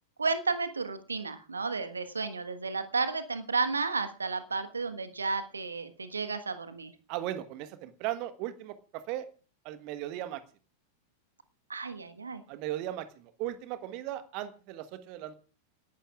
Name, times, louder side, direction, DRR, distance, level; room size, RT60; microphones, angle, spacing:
voice 1, 0.2-6.9 11.7-12.4, right 4 dB, 75° right, 10 dB, 1.4 m, -32 dB
voice 2, 7.1-9.3 9.6-10.4 12.5-15.3, right 13 dB, 45° right, 12 dB, 1.3 m, -37 dB
29.5 x 11.5 x 2.5 m, 0.37 s
figure-of-eight pair, 90°, 0 cm